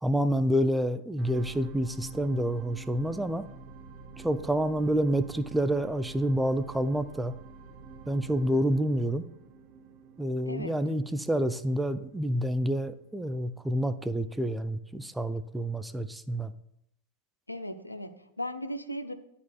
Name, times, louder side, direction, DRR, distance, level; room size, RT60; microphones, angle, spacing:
voice 1, 0.0-3.4 4.2-7.3 8.1-9.2 10.2-16.5, equal, 5° right, 0.3 m, -28 dB
sound 1, 1.2-13.6 14.1-14.2, right 4 dB, 40° right, 0.6 m, -48 dB
voice 2, 17.5-19.1, equal, 85° left, 0.5 m, -37 dB
10.5 x 4.2 x 2.3 m
figure-of-eight pair, 90°, 0 cm